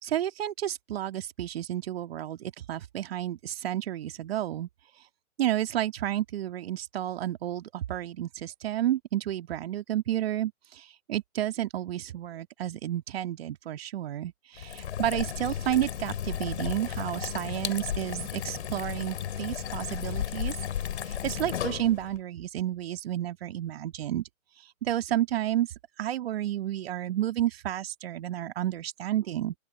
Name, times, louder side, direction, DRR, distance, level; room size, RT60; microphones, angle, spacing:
voice 1, 0.0-4.7 5.4-20.5 21.1-24.3 24.8-25.7 26.0-29.5, right 12 dB, 40° right, 2.4 m, -31 dB
sound 1, 14.6-22.2, left 9 dB, 50° left, 5.8 m, -34 dB
open air
figure-of-eight pair, 130°, 44 cm